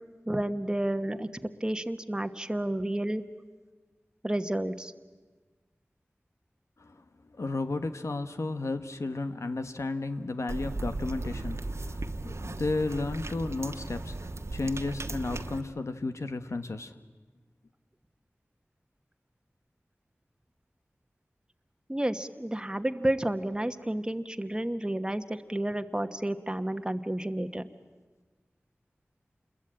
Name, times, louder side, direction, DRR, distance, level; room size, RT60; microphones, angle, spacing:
voice 1, 0.3-3.2 4.2-4.9 21.9-27.7, right 1 dB, 15° right, 7 dB, 1.2 m, -31 dB
voice 2, 7.3-16.9, left 3 dB, 85° left, 9 dB, 1.2 m, -33 dB
sound 1, 10.5-15.6, right 2 dB, 70° right, 1.1 m, -36 dB
27.5 x 21.5 x 8.7 m, 1.3 s
wide cardioid pair, 65°, 5 cm